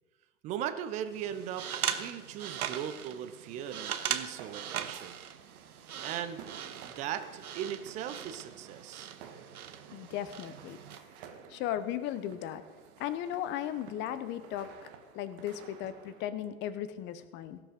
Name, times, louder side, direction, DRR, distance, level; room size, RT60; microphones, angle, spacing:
voice 1, 0.4-5.2 6.0-6.5 6.8-9.1, right 9 dB, 15° right, 10 dB, 0.4 m, -38 dB
sound 1, 1.1-11.0, right 9 dB, 75° right, 1.0 m, -40 dB
sound 2, 4.3-16.2, right 7 dB, 45° right, 1.5 m, -53 dB
voice 2, 9.9-10.8 11.5-12.6 13.0-14.9 15.1-17.6, left 11 dB, 25° left, 12 dB, 0.7 m, -36 dB
17.0 x 6.0 x 5.2 m, 1.3 s
hypercardioid pair, 115°, 44 cm